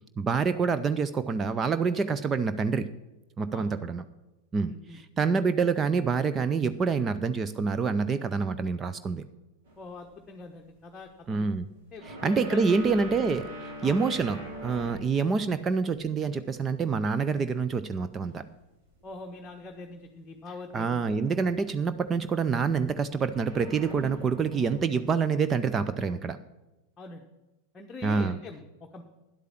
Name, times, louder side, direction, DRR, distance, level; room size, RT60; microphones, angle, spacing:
voice 1, 0.2-2.9 3.4-4.0 4.5-9.2 11.3-11.7 12.1-13.5 13.8-18.4 20.7-26.4 28.0-28.4, right 5 dB, 20° right, 11 dB, 0.5 m, -27 dB
voice 2, 4.6-5.0 9.8-11.5 11.9-12.7 13.8-14.0 15.3-15.4 19.0-21.0 27.0-27.2 27.7-29.0, left 3 dB, 20° left, 2 dB, 1.0 m, -43 dB
sound 1, 9.7-9.9 11.1-11.2 12.0-15.2 15.5-16.4 16.9-18.4 18.8-19.2 19.6-19.8 21.0-21.7 22.1-25.0, right 1 dB, 60° right, 3.5 m, -43 dB
10.5 x 8.3 x 5.9 m, 1.0 s
figure-of-eight pair, 90°, 0 cm